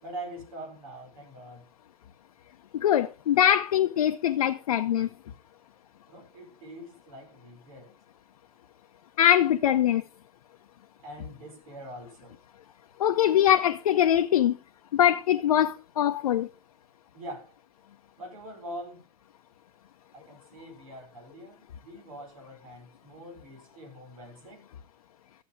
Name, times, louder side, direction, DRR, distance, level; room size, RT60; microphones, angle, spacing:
voice 1, 0.0-1.7 6.1-7.9 11.0-12.4 17.1-17.5 18.2-19.0 20.1-24.7, right 1 dB, 65° right, 5.2 m, -43 dB
voice 2, 2.7-5.1 9.2-10.0 13.0-14.6 14.9-16.5, left 10 dB, 70° left, 0.7 m, -22 dB
12.5 x 7.7 x 4.9 m
figure-of-eight pair, 90°, 19 cm